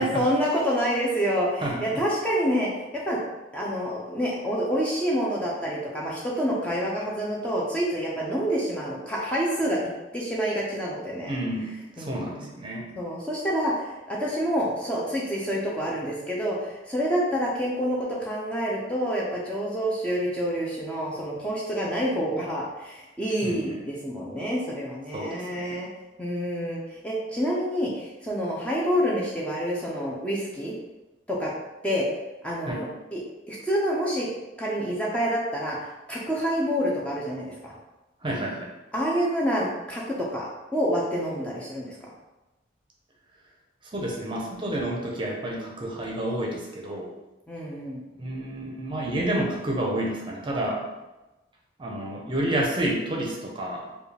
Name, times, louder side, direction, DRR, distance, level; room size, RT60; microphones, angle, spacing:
voice 1, 0.0-3.2 3.5-11.4 12.0-12.4 13.0-25.9 26.2-30.8 31.3-31.5 31.8-32.1 32.4-32.9 33.1-33.2 33.5-34.3 34.6-37.7 38.9-42.1 47.5-48.0, equal, 5° left, -5 dB, 0.6 m, -27 dB
voice 2, 1.6-2.0 11.3-11.7 12.0-12.9 23.4-23.8 25.1-25.9 32.6-32.8 38.2-38.7 43.9-47.1 48.2-50.8 51.8-53.8, right 1 dB, 25° right, -1 dB, 0.7 m, -30 dB
4.6 x 2.4 x 3.3 m, 1.0 s
head